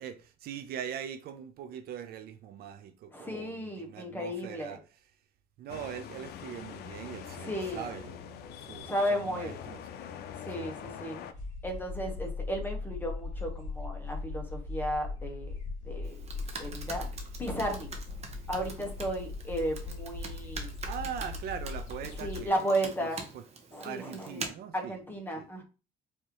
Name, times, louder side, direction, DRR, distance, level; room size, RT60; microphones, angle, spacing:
voice 1, 0.0-4.8 5.6-9.8 10.5-10.7 18.3-18.4 20.8-22.7 23.0-23.1 23.3-23.4 23.8-25.0 25.4-25.5, right 8 dB, 65° right, 0.5 m, -41 dB
voice 2, 3.1-4.8 7.3-7.8 8.8-9.6 10.4-11.2 11.6-15.5 15.8-16.2 16.6-17.1 17.4-17.9 18.5-20.7 22.2-23.2 23.7-25.6, equal, 10° left, 1.1 m, -34 dB
sound 1, 5.7-11.3, left 8 dB, 70° left, 0.5 m, -43 dB
sound 2, 11.3-22.5, left 3 dB, 45° left, 2.1 m, -39 dB
Computer keyboard, 16.0-24.5, right 4 dB, 40° right, 0.9 m, -44 dB
4.7 x 2.8 x 3.0 m
cardioid pair, 110°, 17 cm